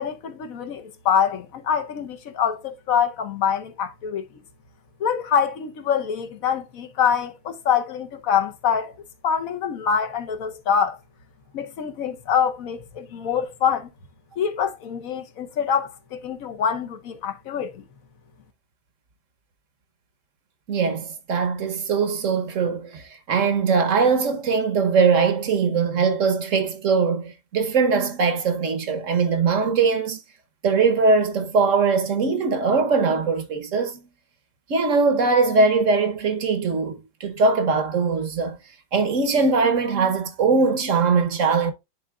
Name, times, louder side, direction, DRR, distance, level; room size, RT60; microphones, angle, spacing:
voice 1, 0.0-4.2 5.0-8.9 9.2-11.0 11.5-13.9 14.4-17.8, left 7 dB, 60° left, 1.2 m, -25 dB
voice 2, 20.7-30.2 30.6-34.0 34.7-38.6 38.9-41.7, right 4 dB, 50° right, 1.1 m, -21 dB
11.0 x 3.9 x 2.3 m
omnidirectional pair, 1.9 m